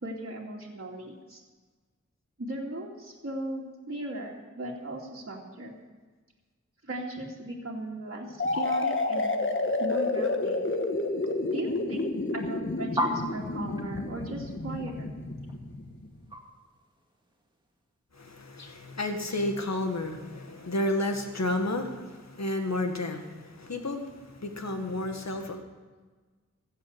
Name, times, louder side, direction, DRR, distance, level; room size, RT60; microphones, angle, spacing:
voice 1, 0.0-1.4 2.4-5.7 6.8-9.3 9.8-10.6 11.5-12.1 12.3-15.2, right 1 dB, 50° right, -3 dB, 2.4 m, -37 dB
sound 1, 8.4-16.1, left 2 dB, 40° left, 1.3 m, -30 dB
sound 2, 12.9-17.5, equal, 15° right, 2.2 m, -35 dB
voice 2, 18.1-25.6, left 1 dB, 60° left, 5 dB, 1.8 m, -31 dB
15.0 x 7.7 x 8.0 m, 1.3 s
wide cardioid pair, 60°, 30 cm